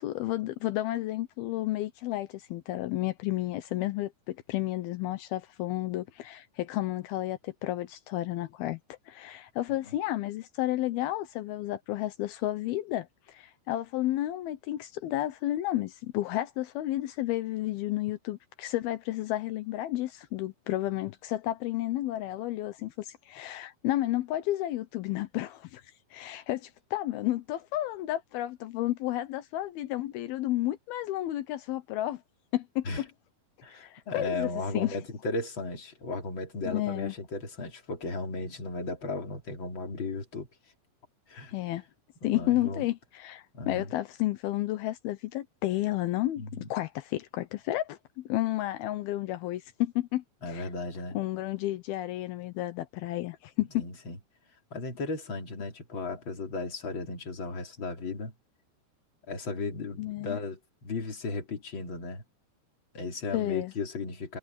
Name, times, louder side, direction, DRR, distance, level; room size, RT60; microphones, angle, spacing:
voice 1, 0.0-8.8 9.1-25.8 26.1-32.2 32.5-33.1 33.7-35.0 36.7-37.1 41.5-41.8 42.2-50.2 50.5-50.7 51.1-53.9 60.0-60.4 63.3-63.7, left 15 dB, 80° left, 2.8 m, -32 dB
voice 2, 33.6-40.5 41.3-41.5 42.2-42.9 43.5-43.9 46.4-46.7 50.4-51.2 53.7-54.2 54.7-58.3 59.3-62.2 62.9-64.4, left 3 dB, 30° left, 3.9 m, -35 dB
omnidirectional pair, 4.4 m